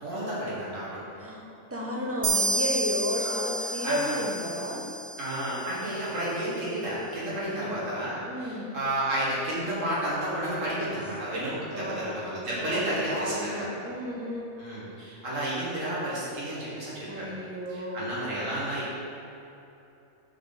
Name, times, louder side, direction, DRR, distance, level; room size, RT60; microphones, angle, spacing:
voice 1, 0.0-1.0 3.2-4.2 5.2-13.7 14.6-17.3 17.7-18.9, right 1 dB, 65° right, -8 dB, 2.1 m, -31 dB
voice 2, 1.7-4.9 7.4-7.9 8.3-8.7 11.5-12.2 12.5-14.5 17.0-18.1, equal, 10° right, -3 dB, 0.7 m, -33 dB
sound 1, 2.2-5.8, right 2 dB, 80° right, 1.2 m, -30 dB
7.0 x 6.2 x 4.0 m, 2.9 s
omnidirectional pair, 1.5 m